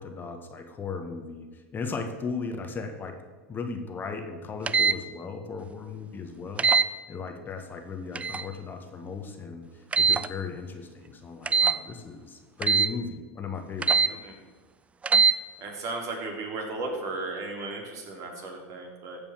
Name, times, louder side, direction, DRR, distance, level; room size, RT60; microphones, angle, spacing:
voice 1, 0.0-3.2 3.5-14.2, left 4 dB, 25° left, 6 dB, 1.4 m, -37 dB
sound 1, 4.7-5.0 6.6-6.9 8.1-8.5 9.9-10.3 11.5-11.8 12.6-12.9 13.8-14.1 15.0-15.3, right 5 dB, 15° right, 0.4 m, -21 dB
voice 2, 15.6-19.2, right 3 dB, 45° right, 1 dB, 3.4 m, -35 dB
14.5 x 5.4 x 7.5 m, 1.4 s
hypercardioid pair, 100°, 7 cm